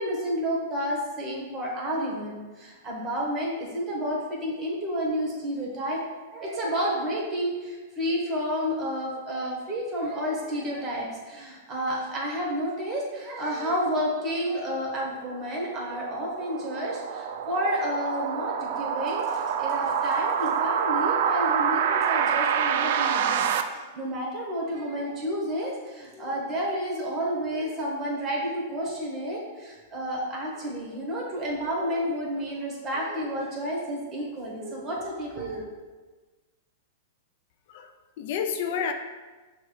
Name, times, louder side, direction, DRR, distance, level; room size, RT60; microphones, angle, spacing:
voice 1, 0.0-6.0 6.3-23.4 23.7-35.7, equal, 25° right, -2 dB, 1.5 m, -30 dB
sound 1, 14.9-23.6, right 7 dB, 65° right, 0.3 m, -27 dB
voice 2, 37.7-38.9, left 7 dB, 60° left, 6 dB, 0.4 m, -30 dB
6.2 x 2.3 x 3.5 m, 1.3 s
hypercardioid pair, 120°, 0 cm